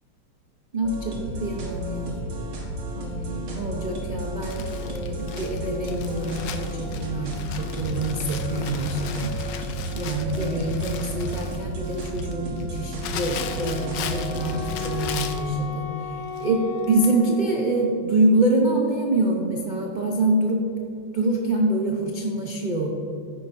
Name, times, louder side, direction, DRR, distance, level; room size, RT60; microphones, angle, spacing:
voice 1, 0.7-2.2 3.0-9.4 9.9-15.9 16.4-20.7 21.1-22.9, right 2 dB, 65° right, -1 dB, 0.4 m, -25 dB
sound 1, 0.8-15.2, right 1 dB, 85° right, 2.3 m, -32 dB
Crumpling crinkling, 4.5-15.5 16.4-16.5 16.8-16.9, left 8 dB, 70° left, 1.2 m, -38 dB
Wind instrument woodwind instrument, 13.3-18.1, left 7 dB, 90° left, 0.7 m, -35 dB
14.0 x 9.7 x 2.6 m, 2.6 s
omnidirectional pair, 2.2 m